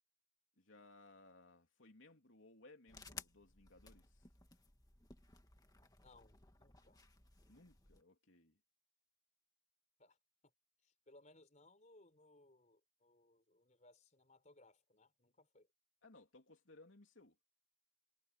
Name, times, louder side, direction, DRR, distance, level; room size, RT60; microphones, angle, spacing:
voice 1, 0.6-4.3 7.5-8.6 16.0-17.4, left 2 dB, 80° left, 3.2 m, -63 dB
sound 1, 2.9-8.0, left 4 dB, 20° left, 1.8 m, -58 dB
voice 2, 6.0-7.0 10.0-10.2 10.8-15.7, left 2 dB, 40° left, 4.4 m, -66 dB
head